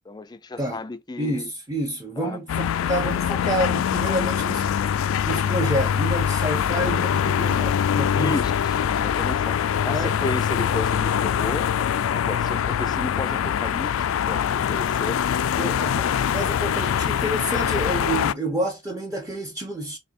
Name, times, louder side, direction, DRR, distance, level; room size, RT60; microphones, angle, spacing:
voice 1, 0.1-1.5 2.2-2.4 8.2-11.7 12.1-15.4, left 2 dB, 20° left, 0.4 m, -33 dB
voice 2, 1.2-8.4 9.9-10.1 15.6-20.0, right 1 dB, 15° right, 0.9 m, -29 dB
sound 1, 2.5-18.3, left 8 dB, 90° left, 0.3 m, -23 dB
3.5 x 2.8 x 4.0 m
head